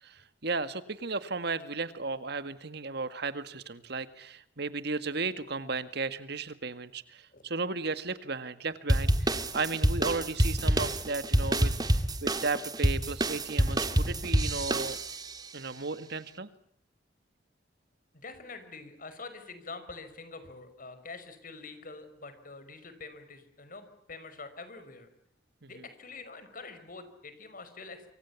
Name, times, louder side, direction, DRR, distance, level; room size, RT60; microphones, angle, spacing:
voice 1, 0.0-15.0 15.5-16.5 25.6-25.7, right 3 dB, 65° right, 12 dB, 1.9 m, -35 dB
sound 1, 8.9-15.4, right 1 dB, 20° right, 2.0 m, -27 dB
voice 2, 18.2-25.1 25.7-28.1, left 3 dB, 50° left, 10 dB, 5.5 m, -45 dB
27.5 x 25.0 x 7.2 m, 0.69 s
head